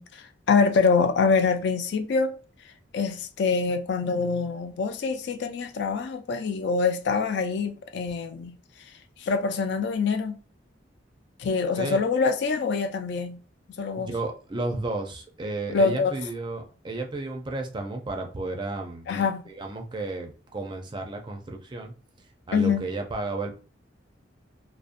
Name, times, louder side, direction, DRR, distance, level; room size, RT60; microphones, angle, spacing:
voice 1, 0.0-2.3 2.9-8.5 9.2-10.4 11.4-13.4 13.8-14.1 15.7-16.1 19.1-19.4 22.5-22.8, left 5 dB, 60° left, 0.4 m, -25 dB
voice 2, 4.2-4.5 11.8-12.0 14.0-19.1 19.5-23.5, right 2 dB, 25° right, 0.4 m, -33 dB
2.6 x 2.0 x 2.5 m
head